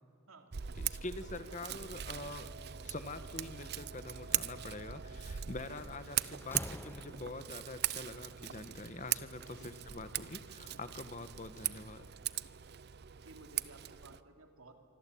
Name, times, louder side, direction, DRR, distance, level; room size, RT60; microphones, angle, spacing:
Scissors, 0.5-14.2, right 11 dB, 50° right, 0.6 m, -40 dB
voice 1, 0.7-2.5 2.8-12.1, left 2 dB, 35° left, 11 dB, 1.2 m, -45 dB
voice 2, 1.3-1.6 5.7-6.2 9.5-9.7 13.2-14.8, right 2 dB, 90° right, 5 dB, 3.1 m, -57 dB
Slam, 5.1-5.3 5.8-7.6, left 1 dB, 10° left, 0.7 m, -46 dB
27.0 x 24.5 x 8.6 m, 2.4 s
head